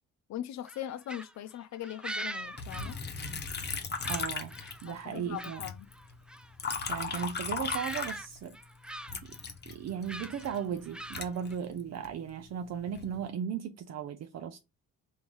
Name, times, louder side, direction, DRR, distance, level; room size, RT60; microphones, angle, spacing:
voice 1, 0.3-3.0 4.8-5.9, left 11 dB, 65° left, 0.5 m, -40 dB
sound 1, 0.7-3.7 4.0-5.6 5.9-6.5 7.0-7.3 7.7-8.3 8.5-9.4 10.0-11.5, right 1 dB, 5° right, 0.3 m, -43 dB
Liquid, 2.6-5.2 5.4-8.6 9.1-12.1 12.7-13.2, left 4 dB, 35° left, 0.9 m, -37 dB
voice 2, 4.1-4.6 4.8-5.7 6.9-8.6 9.2-9.3 9.7-14.6, right 8 dB, 60° right, 0.6 m, -36 dB
3.6 x 2.7 x 4.5 m
cardioid pair, 90°, 30 cm